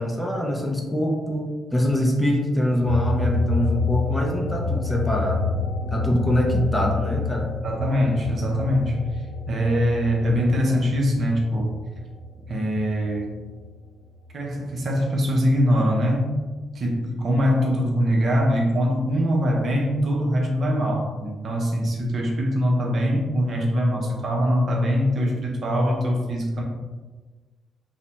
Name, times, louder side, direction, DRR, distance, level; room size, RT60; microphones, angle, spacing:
voice 1, 0.0-5.5 5.9-7.5, equal, 10° left, 0 dB, 0.4 m, -24 dB
sound 1, 2.8-13.7 14.1-15.6, left 3 dB, 45° left, 0.7 m, -28 dB
voice 2, 7.6-11.8 12.5-13.3 14.3-16.4 16.7-26.6, equal, 50° right, 0 dB, 0.6 m, -23 dB
2.6 x 2.0 x 3.1 m, 1.3 s
cardioid pair, 90°, 0 cm